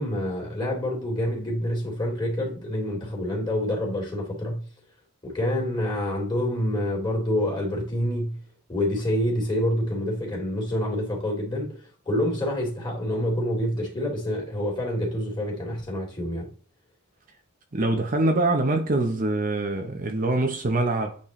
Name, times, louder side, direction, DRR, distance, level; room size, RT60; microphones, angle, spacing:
voice 1, 0.0-4.6 5.2-8.4 8.7-11.8 12.0-16.5, left 1 dB, 20° left, 2.9 m, -27 dB
voice 2, 17.7-21.2, right 2 dB, 40° right, 0.8 m, -24 dB
8.7 x 4.2 x 3.2 m
head